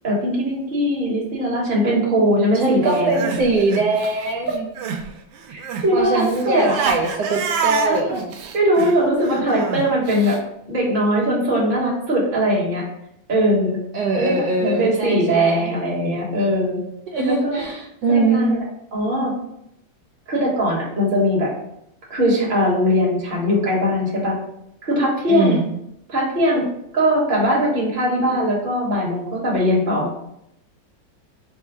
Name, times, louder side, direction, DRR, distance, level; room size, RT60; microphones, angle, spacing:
voice 1, 0.0-3.2 5.5-6.8 7.8-8.2 8.5-10.4 10.7-12.8 13.3-13.8 14.1-16.8 17.3-17.6 18.1-18.6 18.9-19.3 20.3-21.5 22.1-24.4 24.8-25.6 26.1-26.6 26.9-30.2, equal, 30° right, -4 dB, 1.2 m, -20 dB
voice 2, 2.5-4.7 5.9-8.1 13.9-15.7 17.1-18.5 25.3-25.7, right 3 dB, 70° right, -1 dB, 1.4 m, -22 dB
Crying sobbing, 2.9-5.1 5.3-10.4, right 6 dB, 90° right, 1.3 m, -27 dB
4.3 x 2.2 x 4.6 m, 0.77 s
omnidirectional pair, 2.0 m